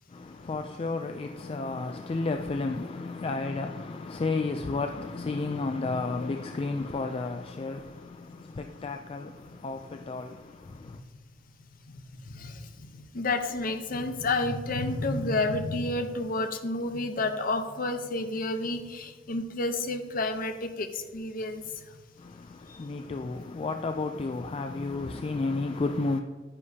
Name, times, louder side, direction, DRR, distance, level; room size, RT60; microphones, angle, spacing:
voice 1, 0.1-11.0 22.2-26.2, left 3 dB, 30° left, 0.3 m, -32 dB
voice 2, 12.3-21.6, left 2 dB, 45° left, 0.8 m, -30 dB
9.9 x 9.9 x 2.8 m
head